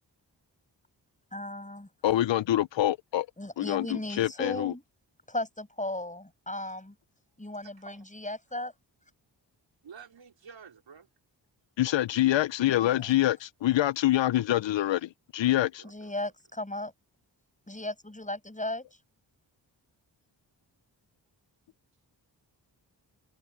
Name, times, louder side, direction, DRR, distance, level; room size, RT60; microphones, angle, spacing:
voice 1, 1.3-1.9 3.4-4.8 5.3-7.0 7.4-8.7 12.8-13.2 15.8-16.9 17.7-18.9, left 1 dB, 15° left, 7.2 m, -36 dB
voice 2, 2.0-3.3 3.6-3.9 4.2-4.7 11.8-15.7, left 14 dB, 75° left, 0.7 m, -25 dB
voice 3, 9.8-11.1 15.4-16.3, right 6 dB, 75° right, 4.6 m, -51 dB
cardioid pair, 45°, 45 cm